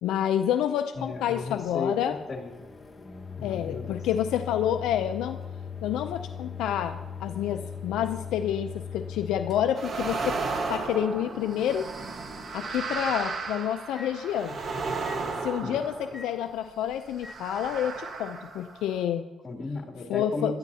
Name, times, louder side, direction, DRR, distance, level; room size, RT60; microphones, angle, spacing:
voice 1, 0.0-2.2 3.4-5.4 5.8-10.4 10.7-11.9 12.5-14.6 15.4-19.2 20.1-20.5, left 10 dB, 85° left, 7 dB, 0.5 m, -28 dB
voice 2, 0.9-2.5 3.4-4.0 15.6-15.8 19.4-20.6, left 3 dB, 35° left, 0 dB, 3.0 m, -35 dB
Microwave oven, 1.0-13.5 14.0-14.1 15.0-15.2 16.1-16.3 17.2-17.4, left 6 dB, 15° left, 1.6 m, -41 dB
sound 1, 9.8-16.5 17.2-19.0, right 4 dB, 50° right, 1.4 m, -34 dB
21.0 x 12.5 x 2.8 m, 1.2 s
cardioid pair, 90°, 0 cm